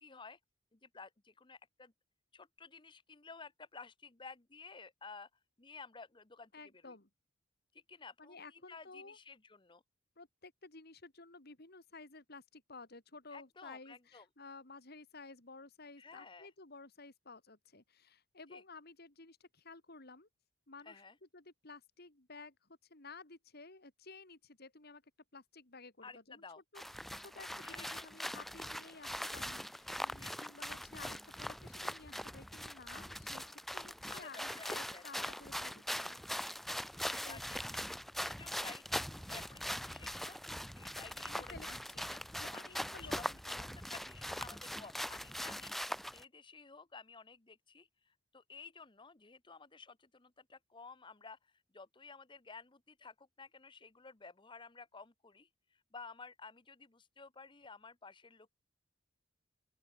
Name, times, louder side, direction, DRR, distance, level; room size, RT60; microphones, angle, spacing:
voice 1, 0.0-0.4 0.8-1.9 2.3-5.3 5.6-6.5 6.8-6.9 7.7-9.8 13.3-14.2 16.0-16.5 18.5-18.6 20.8-21.1 26.0-26.6 27.6-28.1 30.2-30.3 34.1-35.3 37.0-37.8 38.1-40.4 40.7-41.7 42.1-42.2 42.5-43.2 43.9-45.7 46.1-58.5, left 4 dB, 25° left, 1.0 m, -53 dB
voice 2, 6.5-7.1 8.2-9.2 10.2-20.3 20.7-25.0 25.3-26.4 26.7-36.2 37.2-37.4 41.3-42.1 42.4-44.0, left 3 dB, 50° left, 2.8 m, -54 dB
sound 1, 26.8-46.2, equal, ahead, 0.3 m, -42 dB
open air
head